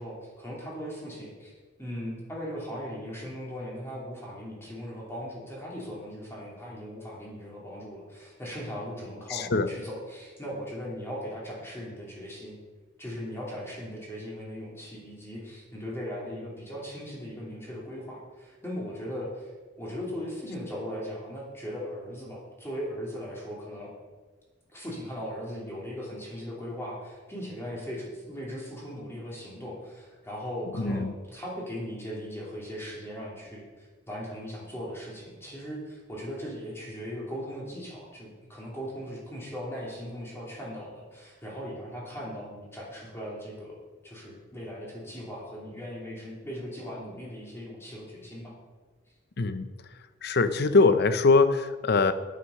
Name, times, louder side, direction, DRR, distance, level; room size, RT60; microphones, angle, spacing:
voice 1, 0.0-1.5 1.8-12.6 13.0-19.5 19.8-23.9 24.7-48.6, equal, 15° left, -4 dB, 3.1 m, -38 dB
voice 2, 9.3-9.7 30.8-31.1 49.4-49.7 50.2-52.1, left 3 dB, 55° left, 12 dB, 0.6 m, -22 dB
9.6 x 9.3 x 5.6 m, 1.4 s
head